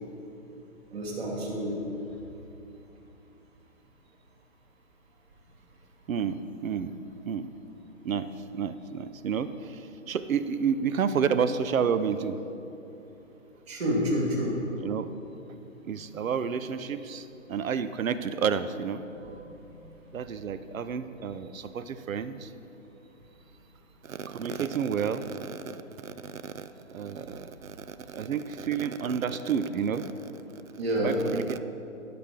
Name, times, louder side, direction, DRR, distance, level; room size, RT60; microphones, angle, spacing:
voice 1, 0.9-2.0 13.7-14.6 19.2-19.8 30.8-31.2, equal, 50° right, -2 dB, 2.5 m, -29 dB
voice 2, 6.1-6.9 7.3-7.5 8.0-12.4 14.8-15.1 15.8-19.0 20.1-22.5 24.0-30.6 31.0-31.6, right 7 dB, 75° right, 12 dB, 0.7 m, -30 dB
16.5 x 6.0 x 3.7 m, 2.9 s
hypercardioid pair, 160°, 41 cm